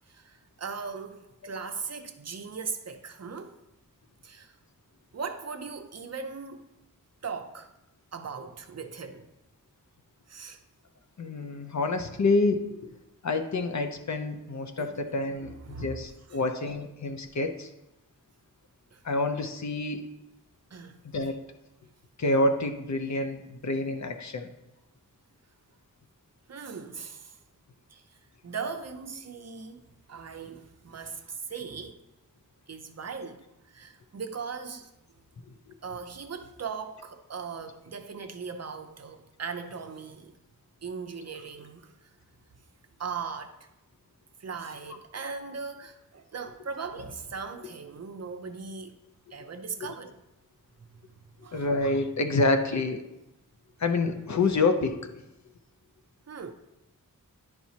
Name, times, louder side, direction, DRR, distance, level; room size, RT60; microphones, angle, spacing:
voice 1, 0.1-3.6 4.2-4.5 5.1-6.7 7.2-7.7 8.1-9.3 10.3-10.6 14.8-15.1 15.4-16.0 16.3-16.4 18.9-19.0 20.7-21.0 26.5-27.4 27.9-28.0 28.4-32.0 32.7-34.9 35.8-40.4 40.8-41.9 43.0-43.6 44.4-49.0 49.3-50.1 51.4-51.7 56.3-56.5, right 5 dB, 50° right, 0.7 m, -39 dB
voice 2, 11.2-12.6 13.2-17.7 19.0-20.1 21.0-21.4 22.2-24.5 49.8-49.9 51.5-53.0 53.8-55.1, left 3 dB, 55° left, 0.7 m, -27 dB
10.5 x 4.5 x 2.8 m
wide cardioid pair, 80°, 34 cm